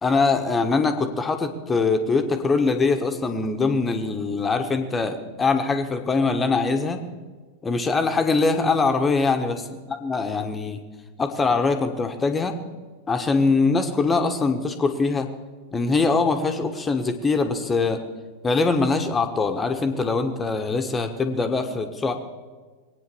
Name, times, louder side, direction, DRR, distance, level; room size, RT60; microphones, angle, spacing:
voice 1, 0.0-7.0 7.6-9.6 9.9-10.8 11.2-12.5 13.1-15.3 15.7-18.0 18.4-22.1, left 4 dB, 15° left, 6 dB, 1.3 m, -22 dB
21.5 x 9.0 x 7.0 m, 1.4 s
figure-of-eight pair, 90°, 0 cm